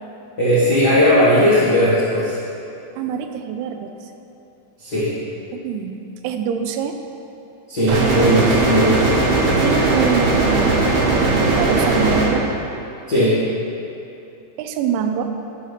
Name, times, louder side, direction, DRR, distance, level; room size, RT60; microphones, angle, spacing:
voice 1, 0.4-2.4 4.8-5.1 7.7-9.1 13.1-13.4, equal, 85° left, -14 dB, 0.8 m, -17 dB
voice 2, 3.0-3.9 5.5-6.0 6.2-7.0 9.6-10.8 11.3-12.5 14.6-15.3, right 7 dB, 90° right, 6 dB, 2.9 m, -24 dB
sound 1, 7.9-12.3, right 2 dB, 75° right, 2.7 m, -18 dB
12.0 x 5.6 x 3.3 m, 2.8 s
omnidirectional pair, 5.1 m